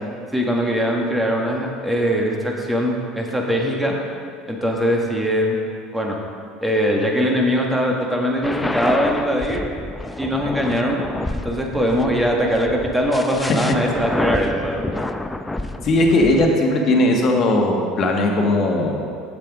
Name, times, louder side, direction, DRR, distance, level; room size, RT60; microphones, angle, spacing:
voice 1, 0.3-3.9 4.5-5.6 5.9-6.2 6.6-9.7 10.2-11.1 11.4-14.9, equal, 5° right, 0 dB, 1.6 m, -21 dB
sound 1, 8.4-16.5, left 2 dB, 10° left, 0.5 m, -28 dB
voice 2, 15.8-19.0, left 1 dB, 50° left, 1 dB, 1.5 m, -18 dB
7.7 x 7.3 x 4.9 m, 2.4 s
hypercardioid pair, 80°, 0 cm